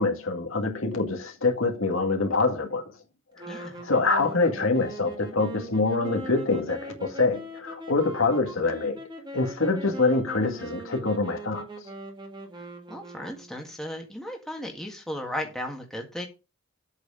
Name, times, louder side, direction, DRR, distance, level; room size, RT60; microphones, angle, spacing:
voice 1, 0.0-2.8 3.4-9.0 9.3-11.7, left 3 dB, 70° left, 2.1 m, -25 dB
sound 1, 3.4-13.8, right 1 dB, 20° right, 1.9 m, -41 dB
voice 2, 3.5-3.9 12.9-16.3, left 1 dB, ahead, 1.8 m, -35 dB
8.4 x 4.8 x 6.5 m
head